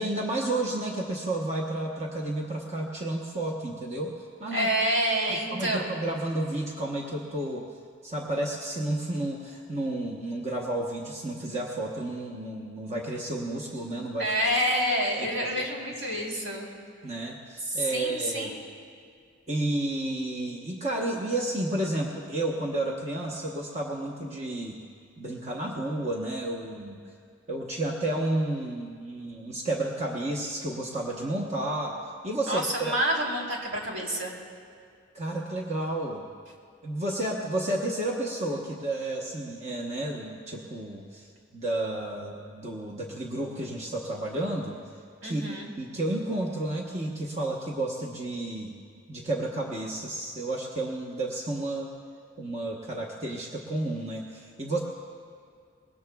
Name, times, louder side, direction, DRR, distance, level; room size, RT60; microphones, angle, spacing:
voice 1, 0.0-4.7 5.5-7.7 8.0-14.3 15.2-15.5 17.0-18.5 19.5-24.8 25.2-27.0 27.5-32.9 35.1-36.2 36.8-41.3 41.5-44.8 45.2-48.7 49.1-51.9 52.4-54.8, right 1 dB, 35° right, -2 dB, 1.0 m, -31 dB
voice 2, 4.5-6.0 14.2-16.7 17.6-18.6 32.5-34.3 45.2-45.7, equal, 70° right, -2 dB, 3.4 m, -28 dB
24.5 x 21.0 x 2.3 m, 2.2 s
head